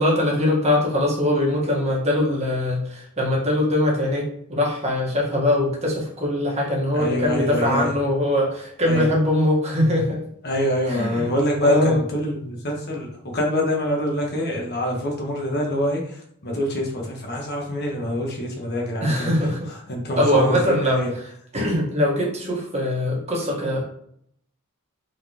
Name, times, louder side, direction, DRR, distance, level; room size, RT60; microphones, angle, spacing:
voice 1, 0.0-10.2 10.9-11.3 11.6-12.0 19.0-19.6 20.2-21.0 21.5-23.8, left 1 dB, 30° right, -3 dB, 1.5 m, -22 dB
voice 2, 6.9-7.9 8.9-9.1 10.4-13.1 13.3-19.5 19.9-21.1, equal, 50° left, 0 dB, 1.2 m, -25 dB
4.6 x 3.9 x 3.0 m, 0.69 s
head